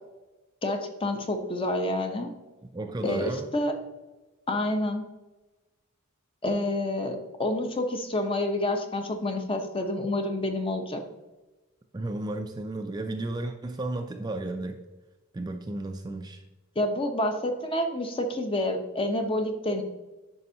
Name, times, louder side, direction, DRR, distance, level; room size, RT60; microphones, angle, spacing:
voice 1, 0.6-2.3 3.0-3.7 4.5-5.0 6.4-11.0 16.8-19.8, left 1 dB, 25° left, 5 dB, 0.8 m, -28 dB
voice 2, 2.7-3.5 11.9-14.8 15.3-16.4, right 2 dB, 20° right, 5 dB, 0.4 m, -33 dB
9.3 x 5.4 x 2.8 m, 1.1 s
head